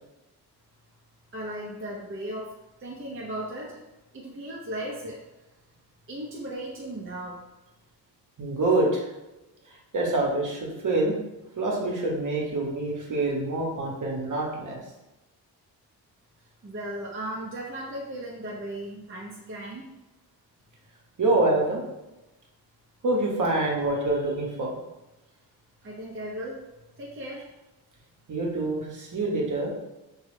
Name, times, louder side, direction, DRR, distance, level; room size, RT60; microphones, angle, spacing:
voice 1, 1.3-2.5 2.8-3.9 4.1-5.2 5.5-5.6 6.1-7.4 16.4-19.9 25.3-25.4 25.8-26.7 27.0-27.5, right 1 dB, 30° right, -4 dB, 0.7 m, -36 dB
voice 2, 8.4-9.1 9.9-11.2 11.6-14.8 21.2-21.8 23.0-24.8 28.3-29.7, right 2 dB, 45° right, -2 dB, 1.0 m, -26 dB
3.0 x 2.3 x 3.2 m, 1.0 s
cardioid pair, 55°, 41 cm